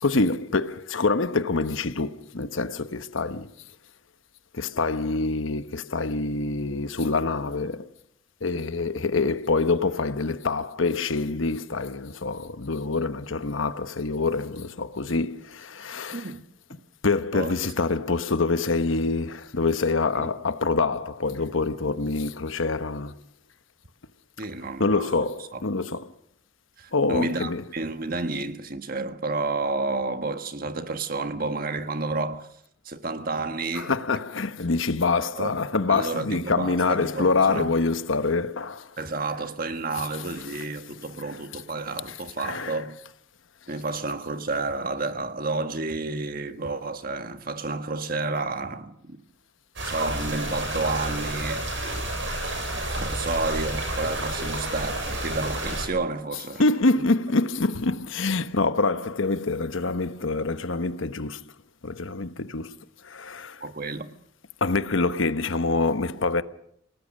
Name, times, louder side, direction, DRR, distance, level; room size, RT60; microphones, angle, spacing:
voice 1, 0.0-3.5 4.5-7.9 8.4-16.3 17.0-23.1 24.8-26.1 26.9-27.6 33.7-38.9 42.1-42.8 56.6-61.4 61.8-62.8 63.0-63.6 64.6-66.4, left 3 dB, 80° left, 1.1 m, -26 dB
voice 2, 16.1-16.4 17.3-17.5 24.4-25.1 25.5-25.6 26.8-32.5 32.8-33.9 35.4-35.5 35.9-37.7 39.0-43.0 43.7-49.2 49.8-51.6 53.0-56.6 56.9-57.0 63.6-64.1, right 3 dB, 45° right, 1.5 m, -30 dB
sound 1, 49.8-55.9, right 1 dB, 65° right, 7.8 m, -30 dB
29.0 x 18.5 x 6.6 m
head